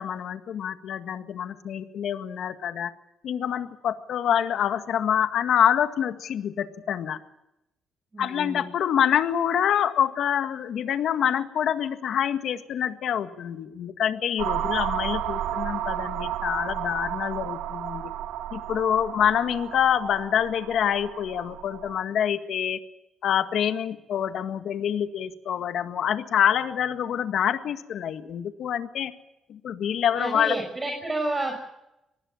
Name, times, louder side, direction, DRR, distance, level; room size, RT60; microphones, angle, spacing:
voice 1, 0.0-2.9 3.2-7.2 8.2-18.1 18.5-22.8 23.2-29.1 29.5-30.6, left 9 dB, 70° left, 8 dB, 1.8 m, -26 dB
voice 2, 8.1-8.6 30.1-31.7, right 2 dB, 25° right, 2 dB, 6.7 m, -30 dB
sound 1, 14.4-22.0, right 11 dB, 90° right, 1.7 m, -32 dB
24.5 x 19.5 x 7.3 m, 0.87 s
cardioid pair, 90°, 0 cm